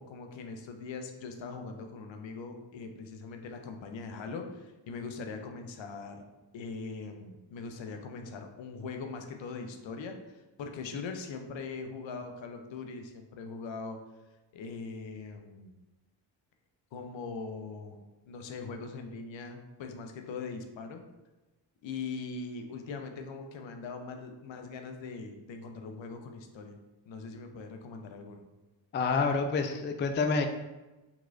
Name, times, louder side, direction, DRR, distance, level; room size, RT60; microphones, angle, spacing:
voice 1, 0.0-6.2 6.5-14.0 14.5-15.7 16.9-18.0 18.3-21.0 21.8-26.8 27.1-28.4, left 4 dB, 70° left, 5 dB, 0.6 m, -41 dB
voice 2, 28.9-30.5, left 4 dB, 25° left, 5 dB, 0.3 m, -28 dB
3.7 x 3.0 x 2.4 m, 1.1 s
supercardioid pair, 50°, 47 cm